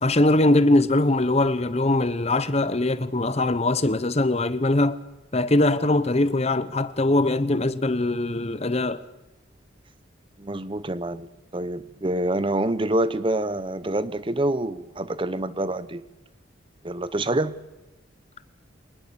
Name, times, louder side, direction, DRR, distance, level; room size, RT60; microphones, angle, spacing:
voice 1, 0.0-5.0 5.3-9.0, left 2 dB, 30° left, 0.9 m, -21 dB
voice 2, 10.4-16.0 16.8-17.5, right 1 dB, 25° right, 0.8 m, -26 dB
25.0 x 20.0 x 6.9 m
head